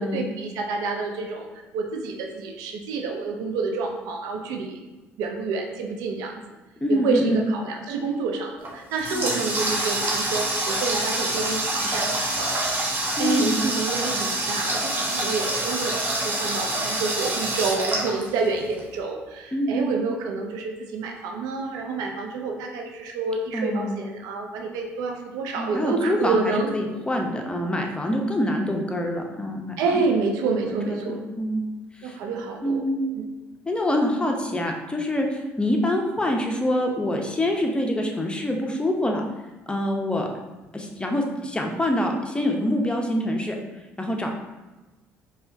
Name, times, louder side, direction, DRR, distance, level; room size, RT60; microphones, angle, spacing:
voice 1, 0.0-1.5 1.7-4.8 5.2-6.3 6.9-12.6 13.2-26.7 29.8-31.2 32.0-32.8 33.1-33.2, right 4 dB, 75° right, 2 dB, 0.6 m, -28 dB
voice 2, 6.8-7.5 9.1-9.3 13.2-13.6 19.5-20.0 23.5-24.0 25.6-30.0 30.7-31.7 32.0-32.2 32.6-33.1 33.7-39.2 39.7-40.3 40.7-43.6 44.0-44.3, left 1 dB, 15° left, 2 dB, 0.8 m, -25 dB
Water tap faucet, 8.6-18.8, right 1 dB, 30° right, 1.2 m, -26 dB
4.6 x 3.0 x 2.7 m, 1.1 s
hypercardioid pair, 60°, 6 cm